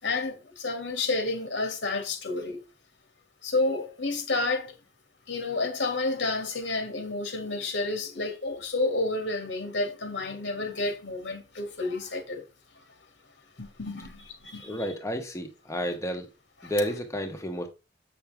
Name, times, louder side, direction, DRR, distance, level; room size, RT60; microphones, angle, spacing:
voice 1, 0.0-2.6 3.4-4.8 5.3-12.5 12.7-12.8 13.6-14.9 16.6-16.7, left 2 dB, 85° left, 2.3 m, -30 dB
voice 2, 14.6-16.3 16.6-17.7, equal, 15° left, 1.1 m, -31 dB
8.1 x 5.9 x 3.5 m
head